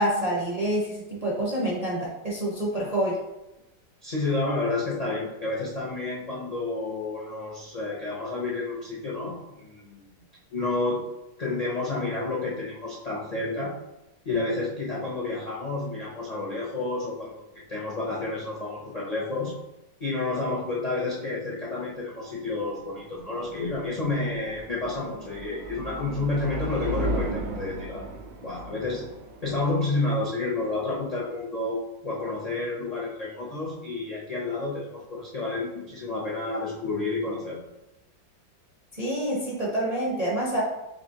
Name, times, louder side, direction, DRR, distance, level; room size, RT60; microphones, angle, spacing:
voice 1, 0.0-3.2 38.9-40.6, right 1 dB, 40° right, -5 dB, 0.5 m, -27 dB
voice 2, 4.0-10.2 10.5-11.0 11.4-13.7 14.2-19.5 20.0-28.0 28.4-29.1 29.4-37.6, left 2 dB, 75° left, -5 dB, 0.3 m, -30 dB
sound 1, 22.5-31.5, right 1 dB, 70° right, 1.1 m, -36 dB
5.0 x 3.2 x 2.8 m, 0.95 s
omnidirectional pair, 1.9 m